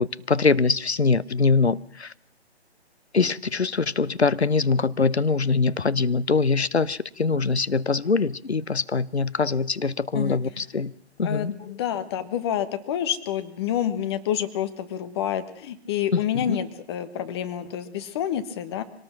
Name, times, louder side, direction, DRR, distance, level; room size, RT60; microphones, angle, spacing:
voice 1, 0.0-2.1 3.1-10.9 11.2-11.5 16.1-16.6, left 4 dB, 80° left, 1.0 m, -23 dB
voice 2, 11.2-18.8, left 10 dB, 25° left, 1.3 m, -28 dB
24.5 x 19.0 x 6.1 m
figure-of-eight pair, 140°, 32 cm